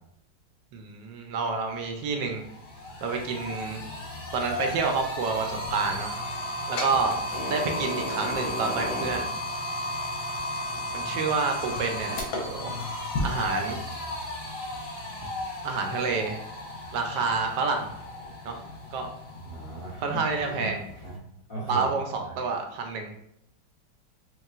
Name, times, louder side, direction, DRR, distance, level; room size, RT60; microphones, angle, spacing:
voice 1, 0.7-2.4 3.0-3.9 4.3-6.1 6.7-7.2 7.5-9.3 10.9-12.7 13.2-13.8 15.6-16.4 16.9-17.9 18.4-18.6 18.9-19.1 20.0-20.8 21.7-23.1, right 4 dB, 75° right, 4 dB, 1.2 m, -28 dB
sound 1, 1.7-1.8 2.2-21.2, left 1 dB, 90° left, 1.7 m, -34 dB
voice 2, 19.4-20.7 21.0-21.2 21.5-21.9 22.2-22.3, right 3 dB, 45° left, -7 dB, 0.7 m, -37 dB
4.7 x 2.9 x 2.4 m, 0.78 s
omnidirectional pair, 2.0 m